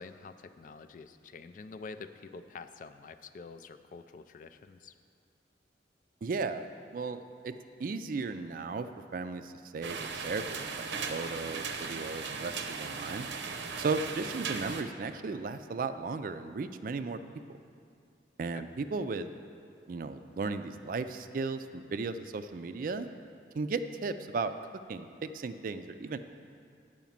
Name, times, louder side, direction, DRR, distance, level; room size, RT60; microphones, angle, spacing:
voice 1, 0.0-4.9 18.5-18.6, left 4 dB, 45° left, 10 dB, 0.3 m, -47 dB
voice 2, 6.2-7.5 7.8-13.3 13.8-17.2 17.5-17.6 18.4-19.3 19.9-23.1 23.5-24.5 24.9-26.2, right 4 dB, 50° right, 10 dB, 0.4 m, -35 dB
sound 1, 9.8-14.8, right 5 dB, 90° right, 0.7 m, -37 dB
9.1 x 5.0 x 7.2 m, 2.4 s
head